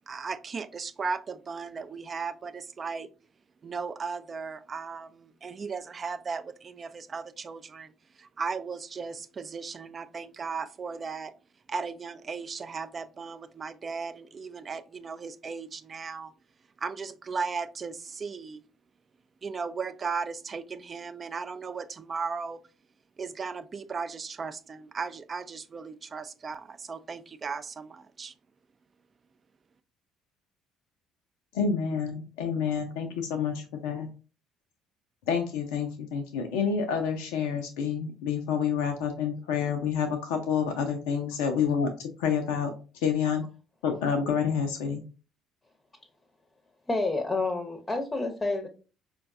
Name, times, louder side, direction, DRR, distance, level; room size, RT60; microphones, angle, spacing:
voice 1, 0.1-3.1 3.6-11.3 11.7-16.3 16.8-18.6 19.4-22.6 23.2-28.3, right 5 dB, 35° right, 0.3 m, -36 dB
voice 2, 31.5-34.1 35.3-42.7 43.0-43.4 43.8-45.0, left 6 dB, 70° left, 0.4 m, -28 dB
voice 3, 46.9-48.7, left 2 dB, 20° left, 0.7 m, -29 dB
4.5 x 2.2 x 2.5 m
hypercardioid pair, 55°, 0 cm